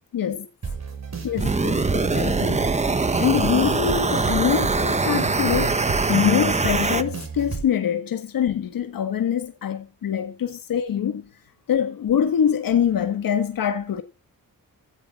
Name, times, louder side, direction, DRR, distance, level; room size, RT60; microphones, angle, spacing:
voice 1, 0.1-0.5 1.2-2.7 3.2-5.8 6.1-11.3 11.7-14.0, left 9 dB, 80° left, 1.6 m, -24 dB
sound 1, 0.6-7.6, right 5 dB, 50° right, 7.7 m, -31 dB
sound 2, 1.4-7.0, right 3 dB, 20° right, 1.0 m, -23 dB
15.5 x 15.0 x 2.5 m
wide cardioid pair, 135°, 34 cm